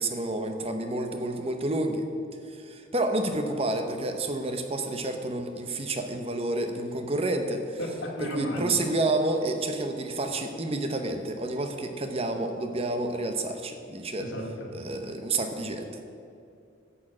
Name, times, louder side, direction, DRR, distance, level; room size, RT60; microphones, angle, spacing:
voice 1, 0.0-2.0 2.5-7.8 8.2-14.3 14.7-15.9, right 2 dB, 30° right, 6 dB, 0.8 m, -29 dB
voice 2, 7.8-8.7 14.2-14.7, left 1 dB, 80° left, -1 dB, 2.3 m, -34 dB
11.0 x 6.6 x 8.5 m, 2.5 s
head